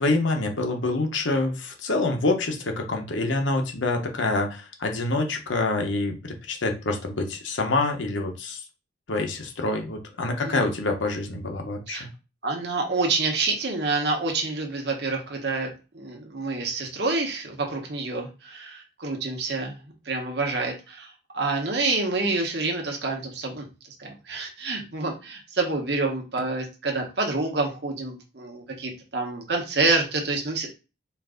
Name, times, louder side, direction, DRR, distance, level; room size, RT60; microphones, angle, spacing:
voice 1, 0.0-8.6 9.1-12.1, left 2 dB, 80° left, 4 dB, 0.9 m, -26 dB
voice 2, 12.4-23.7 24.0-30.7, right 3 dB, 60° right, 1 dB, 1.1 m, -28 dB
4.4 x 2.6 x 3.7 m, 0.30 s
head